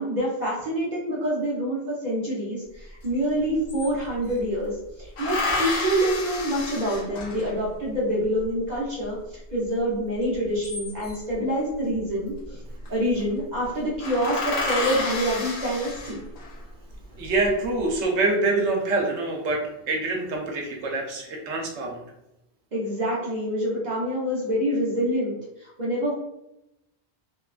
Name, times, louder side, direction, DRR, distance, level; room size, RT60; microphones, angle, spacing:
voice 1, 0.0-4.7 5.0-9.2 9.5-12.6 12.9-16.2 22.7-26.1, equal, 50° right, -5 dB, 0.7 m, -26 dB
sound 1, 3.0-3.1 3.4-4.4 5.2-7.7 10.3-11.3 12.5-12.9 13.2-13.3 13.6-13.7 14.0-16.6 17.1-17.8, left 2 dB, 75° left, 1.0 m, -30 dB
voice 2, 17.2-22.0, right 2 dB, 85° right, 0 dB, 0.9 m, -25 dB
2.9 x 2.1 x 2.3 m, 0.87 s
omnidirectional pair, 1.1 m